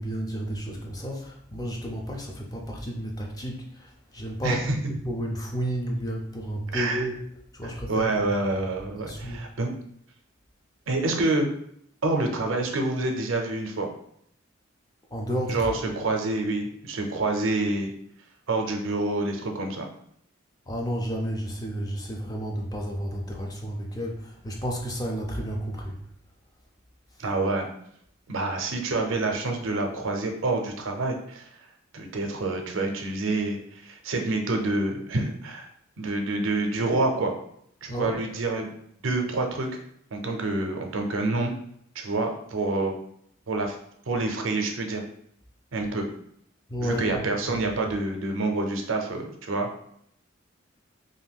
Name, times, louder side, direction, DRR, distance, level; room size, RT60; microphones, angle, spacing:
voice 1, 0.0-7.2 7.5-8.4 9.0-9.4 15.1-15.8 20.7-26.0 37.9-38.2 46.7-47.2 47.5-47.6, equal, 20° left, 1 dB, 0.4 m, -32 dB
voice 2, 4.4-4.8 6.7-7.0 7.6-9.7 10.9-11.5 12.0-13.9 15.5-17.9 18.5-19.9 27.2-27.7 28.3-31.5 31.9-35.7 36.0-37.3 37.8-38.7 39.0-39.7 40.1-41.5 41.9-42.9 43.5-43.8 44.1-45.0 45.7-46.0 46.8-49.7, right 2 dB, 85° right, 3 dB, 0.5 m, -27 dB
2.5 x 2.2 x 3.4 m, 0.69 s
head